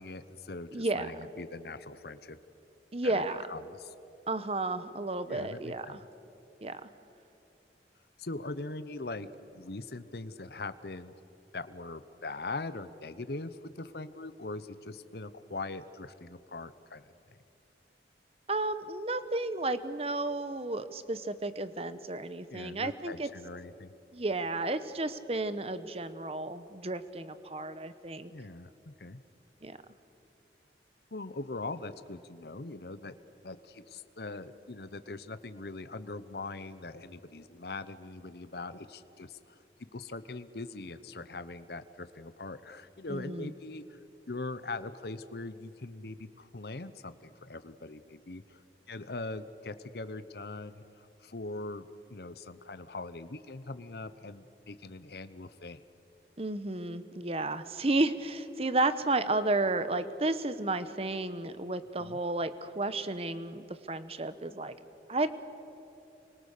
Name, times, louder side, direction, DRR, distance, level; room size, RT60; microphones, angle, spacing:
voice 1, 0.0-2.4 3.0-3.9 5.3-6.1 8.2-9.3 9.5-11.1 11.5-17.4 22.5-23.9 28.3-29.2 31.1-33.1 33.4-39.6 39.9-44.0 44.3-48.6 48.9-55.8 62.0-62.2, left 3 dB, 60° left, 12 dB, 0.9 m, -41 dB
voice 2, 0.7-1.1 2.9-3.4 4.3-6.0 6.6-6.9 18.5-23.3 24.1-28.3 29.6-29.8 43.1-43.5 56.4-64.7 65.1-65.3, right 2 dB, 35° right, 12 dB, 1.0 m, -32 dB
29.0 x 24.5 x 6.7 m, 2.9 s
head